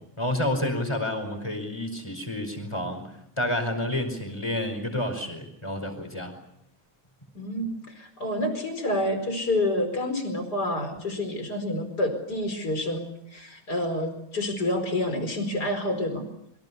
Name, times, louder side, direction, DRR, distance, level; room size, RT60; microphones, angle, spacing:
voice 1, 0.0-3.1 3.4-6.3, left 1 dB, 15° left, 6 dB, 5.0 m, -29 dB
voice 2, 7.4-16.3, left 1 dB, 50° left, 7 dB, 5.2 m, -28 dB
27.0 x 24.0 x 7.0 m, 0.75 s
omnidirectional pair, 2.2 m